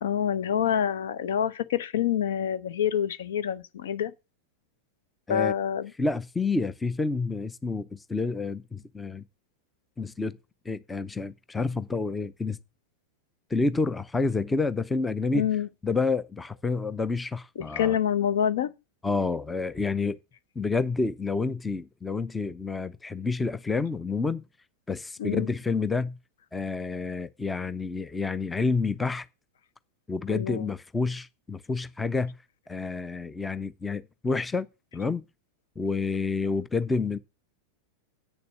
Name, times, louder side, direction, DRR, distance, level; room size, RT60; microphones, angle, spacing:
voice 1, 0.0-4.1 5.3-5.9 15.3-15.7 17.6-18.7 25.2-25.5 30.3-30.7, left 9 dB, 60° left, 0.8 m, -27 dB
voice 2, 6.0-9.2 10.0-10.4 10.6-12.6 13.5-15.5 15.8-18.0 19.0-20.2 20.6-24.4 24.9-26.2 26.5-29.3 30.1-32.3 32.7-34.7 34.9-35.2 35.8-37.2, left 4 dB, 10° left, 0.6 m, -29 dB
9.1 x 6.9 x 6.9 m
figure-of-eight pair, 90°, 0 cm